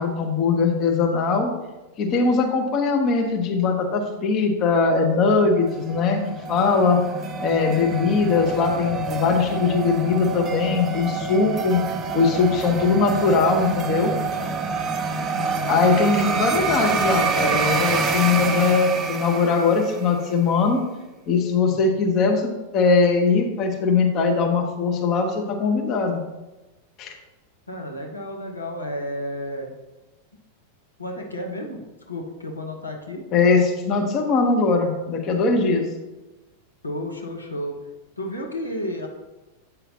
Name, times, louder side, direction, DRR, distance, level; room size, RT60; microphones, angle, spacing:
voice 1, 0.0-1.5 2.0-6.2 6.5-7.0 7.4-11.8 12.1-14.1 15.7-20.8 21.3-26.2 27.0-27.1 33.3-35.8, left 4 dB, 35° left, 2 dB, 1.0 m, -20 dB
sound 1, 5.6-20.2, right 4 dB, 25° right, 0.5 m, -27 dB
voice 2, 7.9-8.3 15.3-15.8 21.7-22.0 27.7-29.7 31.0-31.8 32.1-33.2 36.8-37.8 38.2-39.1, left 1 dB, 80° left, 1 dB, 1.0 m, -32 dB
8.2 x 5.5 x 2.9 m, 1.1 s
figure-of-eight pair, 90°, 0 cm